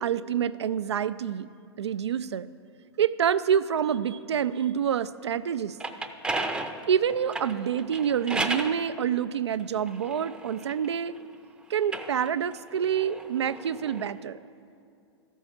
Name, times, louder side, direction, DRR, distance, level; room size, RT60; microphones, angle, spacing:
voice 1, 0.0-1.5 1.8-2.5 3.0-5.8 6.9-11.1 11.7-14.4, right 8 dB, 85° right, 14 dB, 0.4 m, -27 dB
sound 1, 5.6-8.8 9.5-11.2 11.8-14.1, right 2 dB, 5° right, 0.6 m, -34 dB
13.0 x 5.4 x 7.1 m, 2.5 s
hypercardioid pair, 115°, 14 cm